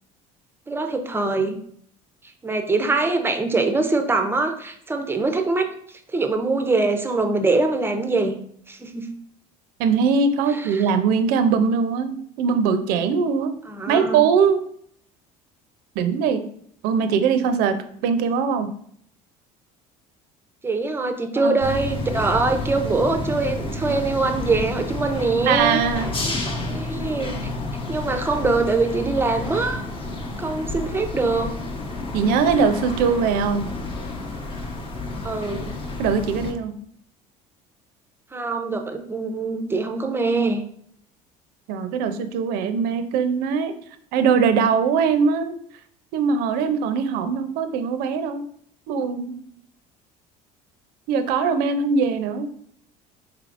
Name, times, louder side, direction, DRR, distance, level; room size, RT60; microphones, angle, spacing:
voice 1, 0.7-1.6 2.4-5.7 6.1-8.3 8.7-9.1 10.5-10.9 13.6-14.3 20.6-25.8 26.2-26.3 26.7-27.5 27.9-29.8 30.4-31.5 35.2-35.6 38.3-40.6, right 3 dB, 15° right, 6 dB, 0.5 m, -23 dB
voice 2, 9.8-13.6 13.9-14.6 16.0-16.4 16.8-18.7 21.4-21.6 25.5-26.1 32.1-33.7 36.0-36.7 41.7-43.7 44.1-45.5 46.1-48.5 48.9-49.4 51.1-52.5, right 6 dB, 70° right, 9 dB, 0.5 m, -21 dB
sound 1, 21.6-36.5, left 2 dB, 35° left, 0.9 m, -30 dB
4.5 x 3.4 x 2.5 m, 0.64 s
supercardioid pair, 110°, 16 cm